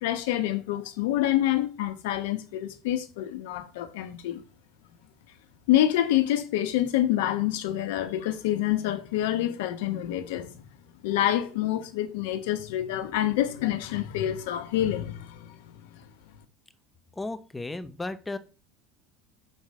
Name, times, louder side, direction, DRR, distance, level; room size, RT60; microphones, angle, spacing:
voice 1, 0.0-4.4 5.7-10.6 11.0-15.6, left 13 dB, 85° left, 1.1 m, -27 dB
voice 2, 17.2-18.4, left 2 dB, 5° left, 0.5 m, -34 dB
6.4 x 4.9 x 4.3 m
cardioid pair, 175°, 0 cm